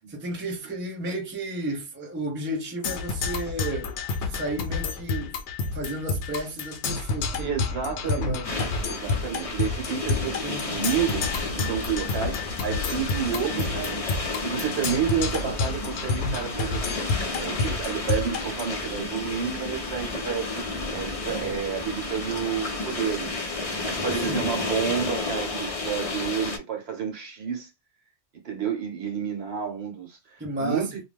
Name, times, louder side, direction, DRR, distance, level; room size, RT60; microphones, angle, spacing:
voice 1, 0.1-3.9 4.2-5.4 5.7-7.6 8.1-8.7 10.4-10.9 24.2-24.5 30.4-30.9, right 1 dB, 15° right, 0.5 m, -33 dB
Percussion, 2.8-18.8, left 4 dB, 80° left, 0.9 m, -30 dB
voice 2, 7.4-8.4 8.8-11.3 11.6-14.0 14.4-27.7 28.4-31.0, right 8 dB, 70° right, 1.0 m, -30 dB
sound 1, 8.4-26.6, left 3 dB, 40° left, 0.6 m, -32 dB
2.4 x 2.0 x 3.3 m
omnidirectional pair, 1.2 m